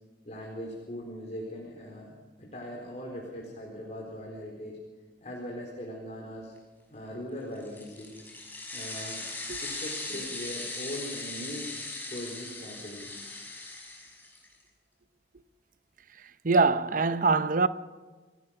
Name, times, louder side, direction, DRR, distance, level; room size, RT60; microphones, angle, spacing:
voice 1, 0.2-4.8 5.2-6.5 6.9-8.2 8.7-9.3 9.6-11.7 12.1-13.1, equal, 40° left, 4.4 m, -40 dB
sound 1, 7.6-14.5, left 2 dB, 10° left, 6.0 m, -39 dB
voice 2, 16.4-17.7, right 4 dB, 50° right, 0.8 m, -23 dB
30.0 x 17.0 x 5.9 m
head